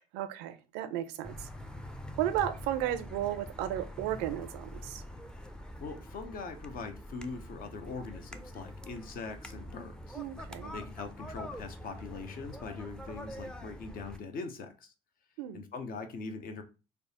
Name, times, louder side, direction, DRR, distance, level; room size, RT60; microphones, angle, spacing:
voice 1, 0.1-1.5 2.2-5.0 10.2-10.7 15.4-15.6, right 12 dB, 85° right, 11 dB, 0.4 m, -34 dB
sound 1, 1.2-14.2, equal, 5° left, 0.4 m, -45 dB
voice 2, 5.8-10.2 10.7-14.9 15.5-16.6, left 4 dB, 60° left, 7 dB, 0.8 m, -42 dB
3.3 x 2.1 x 4.0 m, 0.31 s
supercardioid pair, 65°, 17 cm